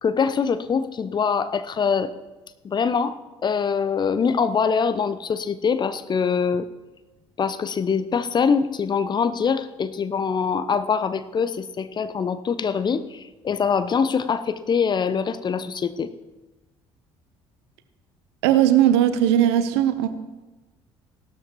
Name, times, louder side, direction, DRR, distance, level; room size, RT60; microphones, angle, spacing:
voice 1, 0.0-2.1 2.6-3.2 3.4-6.7 7.4-16.1, left 6 dB, 30° left, 12 dB, 0.7 m, -23 dB
voice 2, 18.4-20.1, right 11 dB, 65° right, 12 dB, 0.9 m, -18 dB
16.5 x 12.5 x 3.0 m, 1.1 s
figure-of-eight pair, 55°, 15 cm